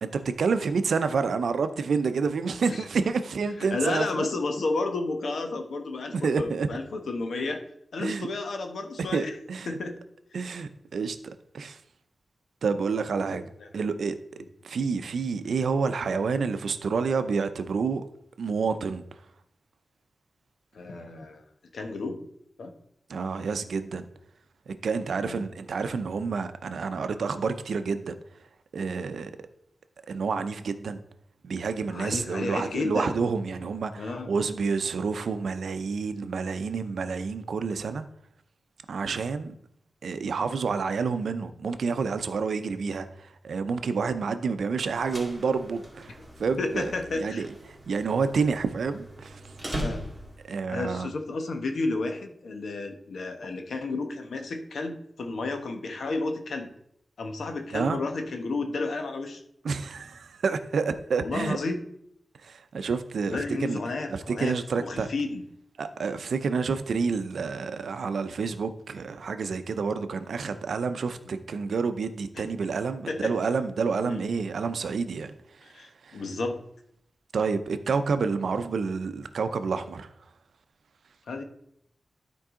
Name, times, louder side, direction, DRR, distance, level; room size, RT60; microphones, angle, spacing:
voice 1, 0.0-4.3 6.1-6.7 8.0-8.3 9.1-9.7 10.3-11.8 12.6-13.4 13.7-14.1 14.6-18.0 18.4-19.0 23.1-24.1 24.7-28.1 28.7-29.3 30.1-31.0 31.4-38.0 38.9-39.5 40.0-46.1 46.4-47.5 47.9-49.4 50.5-51.1 57.7-58.0 59.6-61.6 62.4-63.8 64.1-65.1 65.8-75.3 75.7-76.2 77.3-80.1, right 5 dB, 80° right, 0.6 m, -29 dB
voice 2, 3.6-7.6 7.9-9.4 9.7-9.9 13.1-13.3 13.6-13.7 20.7-21.4 21.7-22.2 22.6-22.7 25.2-25.5 31.9-33.2 34.0-34.3 46.6-47.4 49.8-50.0 50.7-56.7 57.2-59.4 61.2-61.8 63.3-65.4 71.3-71.4 72.4-72.5 73.1-73.3 74.0-74.2 75.6-76.6 81.3-81.4, left 3 dB, 75° left, 1.0 m, -32 dB
sound 1, 44.8-50.6, equal, 5° right, 2.0 m, -39 dB
12.5 x 4.6 x 3.8 m
wide cardioid pair, 130°, 0 cm